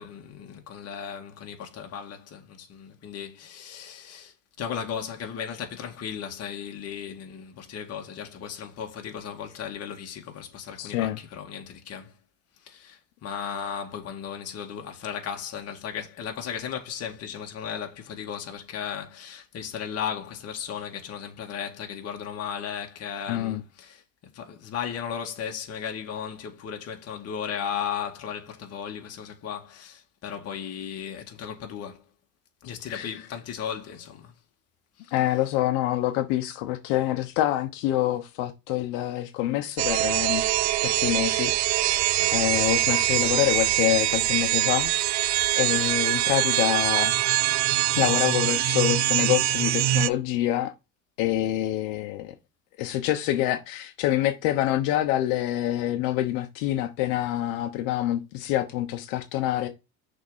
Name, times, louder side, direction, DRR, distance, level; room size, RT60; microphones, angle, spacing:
voice 1, 0.0-12.1 12.6-24.0 24.3-32.0 32.6-34.3 35.0-35.1 42.2-42.5, left 8 dB, 45° left, 1.9 m, -36 dB
voice 2, 10.8-11.2 23.3-23.6 32.9-33.1 35.1-40.5 40.8-41.5 42.3-44.9 45.5-47.1 48.0-50.7 51.2-52.3 52.8-59.7, left 14 dB, 85° left, 1.1 m, -26 dB
sound 1, 39.8-50.1, right 15 dB, 55° right, 0.6 m, -24 dB
6.5 x 3.8 x 5.5 m
cardioid pair, 130°, 34 cm